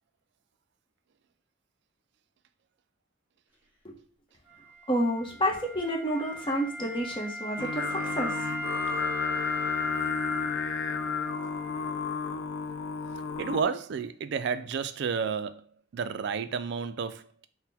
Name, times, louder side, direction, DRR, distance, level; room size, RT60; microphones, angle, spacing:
Wind instrument woodwind instrument, 4.5-12.2, equal, 10° right, 0.8 m, -38 dB
voice 1, 4.9-8.3, equal, 25° left, 1.0 m, -29 dB
Singing, 7.6-13.6, left 5 dB, 80° left, 0.4 m, -32 dB
voice 2, 13.4-15.6 15.9-17.5, right 6 dB, 60° right, 0.3 m, -31 dB
4.0 x 2.1 x 4.1 m
head